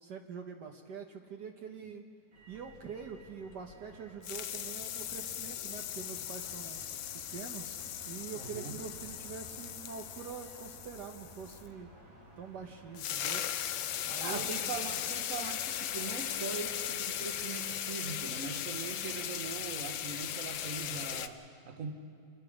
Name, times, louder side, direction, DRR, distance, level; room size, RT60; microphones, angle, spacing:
voice 1, 0.0-2.1 2.5-6.9 7.3-7.8 8.0-11.9 12.4-13.4 14.0-14.5, right 6 dB, 65° right, 3 dB, 1.5 m, -45 dB
Motor vehicle (road), 2.3-20.8, right 2 dB, 85° right, 3.2 m, -56 dB
sound 1, 2.7-4.0 4.2-11.7 12.6-12.7 12.9-21.3, left 10 dB, 80° left, 1.5 m, -38 dB
voice 2, 8.3-8.8 14.2-21.9, right 5 dB, 50° right, 6 dB, 1.5 m, -41 dB
27.5 x 20.5 x 5.0 m, 2.4 s
omnidirectional pair, 2.1 m